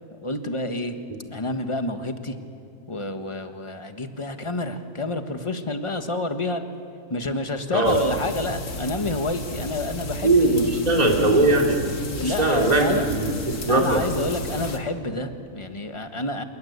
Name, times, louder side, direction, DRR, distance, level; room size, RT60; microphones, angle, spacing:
voice 1, 0.2-1.0 1.3-2.3 2.9-6.6 7.1-10.6 12.2-13.0 13.7-16.4, left 2 dB, 20° left, 7 dB, 1.3 m, -29 dB
sound 1, 7.8-14.8, left 1 dB, 50° left, 2.1 m, -34 dB
voice 2, 10.2-11.8 12.2-14.0, right 2 dB, 25° right, 0 dB, 2.9 m, -20 dB
28.0 x 19.5 x 8.2 m, 2.7 s
omnidirectional pair, 1.7 m